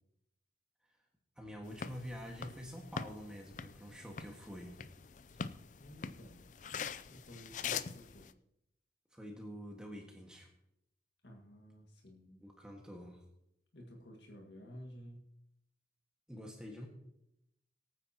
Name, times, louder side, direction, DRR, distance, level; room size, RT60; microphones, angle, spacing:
voice 1, 1.4-4.8 7.7-7.8 9.1-10.5 12.4-13.2 16.3-16.9, equal, 5° right, 0 dB, 1.6 m, -47 dB
sound 1, 1.6-8.3, left 6 dB, 45° left, 0.4 m, -44 dB
voice 2, 5.8-6.5 7.1-8.3 11.2-12.5 13.7-15.3, equal, 75° left, 1 dB, 1.8 m, -53 dB
21.0 x 9.3 x 2.9 m, 0.79 s
head